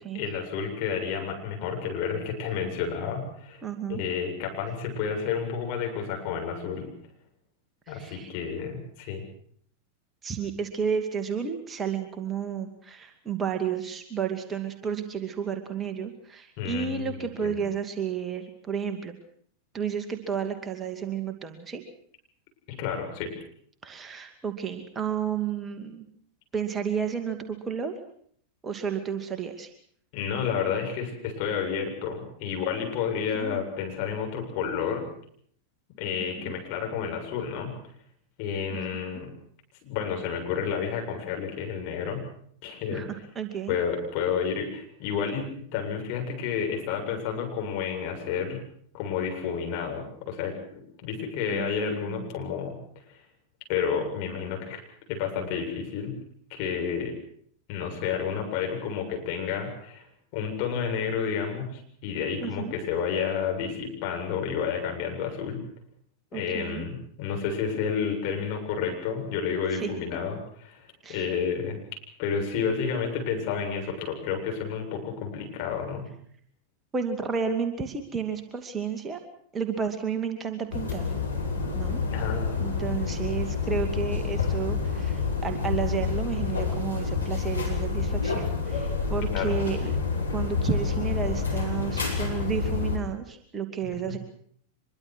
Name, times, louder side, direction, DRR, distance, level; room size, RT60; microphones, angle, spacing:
voice 1, 0.1-3.6 3.9-6.9 7.9-9.2 16.6-17.2 17.4-17.6 22.7-23.3 30.1-35.0 36.0-37.7 38.4-39.3 39.8-42.2 42.6-43.0 43.7-48.6 48.9-52.8 53.7-54.8 55.1-56.2 56.5-57.1 57.7-60.0 60.3-65.6 66.3-70.8 71.1-71.8 72.2-76.1 82.1-82.6 83.1-83.2 89.3-89.5 93.9-94.1, left 7 dB, 45° left, 2 dB, 7.6 m, -30 dB
voice 2, 3.6-4.0 7.9-8.3 10.2-19.2 19.7-21.8 23.8-26.1 26.5-27.9 28.6-29.7 33.3-33.6 36.4-36.6 38.7-38.8 39.1-39.2 42.9-43.8 51.5-52.4 62.4-62.8 66.3-66.9 69.7-70.2 71.0-71.3 76.9-79.2 79.5-81.1 81.7-82.0 82.6-90.0 90.3-94.2, right 7 dB, 20° right, 6 dB, 2.4 m, -32 dB
sound 1, 80.7-93.0, left 5 dB, 80° left, 5.5 m, -28 dB
25.0 x 23.0 x 6.3 m, 0.62 s
figure-of-eight pair, 90°, 0 cm